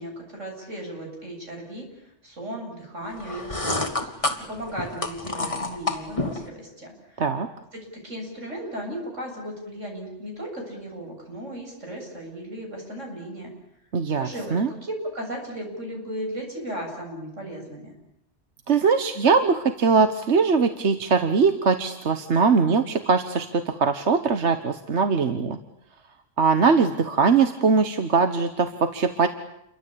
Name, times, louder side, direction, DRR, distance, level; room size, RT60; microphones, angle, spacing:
voice 1, 0.0-1.8 2.2-7.2 7.7-13.5 14.2-17.9, equal, 85° right, 1 dB, 8.2 m, -36 dB
sound 1, 3.2-6.5, left 2 dB, 25° left, 2.5 m, -29 dB
voice 2, 13.9-14.7 18.7-25.6 26.4-29.3, right 5 dB, 65° right, 8 dB, 1.5 m, -21 dB
29.0 x 23.5 x 8.6 m, 0.78 s
omnidirectional pair, 1.2 m